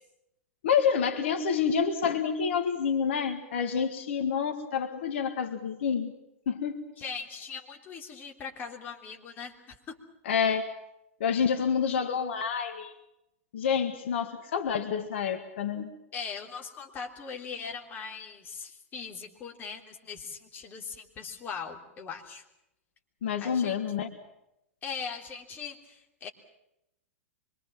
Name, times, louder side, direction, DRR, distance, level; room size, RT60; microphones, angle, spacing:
voice 1, 0.6-6.1 6.5-6.9 10.3-10.6 11.2-12.9 13.5-15.9 23.2-24.1, left 7 dB, 55° left, 7 dB, 1.9 m, -28 dB
voice 2, 7.0-10.0 16.1-22.5 23.4-23.8 24.8-26.3, left 6 dB, 25° left, 1 dB, 3.3 m, -40 dB
25.0 x 23.0 x 7.5 m, 0.85 s
figure-of-eight pair, 100°, 8 cm